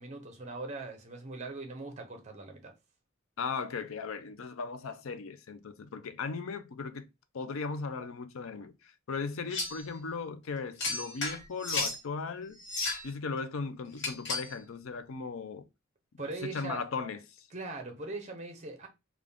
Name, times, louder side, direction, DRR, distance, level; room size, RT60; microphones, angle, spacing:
voice 1, 0.0-2.7 16.2-16.8 17.5-18.9, right 3 dB, 35° right, 0.9 m, -40 dB
voice 2, 3.4-7.1 7.3-12.6 13.0-15.7 16.4-17.5, left 4 dB, 85° left, 0.5 m, -37 dB
sound 1, 9.5-9.8 10.8-12.0 12.6-13.1 14.0-14.5, left 3 dB, 65° left, 1.1 m, -34 dB
3.7 x 2.4 x 3.4 m
head